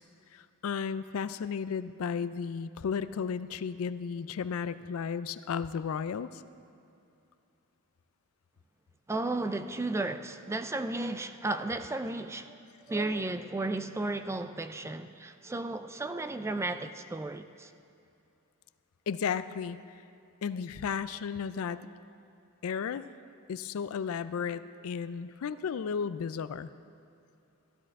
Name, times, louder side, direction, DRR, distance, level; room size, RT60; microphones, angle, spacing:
voice 1, 0.3-6.4 19.1-19.8 20.4-21.8 22.6-23.0 23.5-26.7, left 6 dB, 70° left, 0.4 m, -34 dB
voice 2, 9.1-12.6 12.9-17.7, right 2 dB, 10° right, 0.3 m, -34 dB
15.5 x 12.5 x 3.6 m
head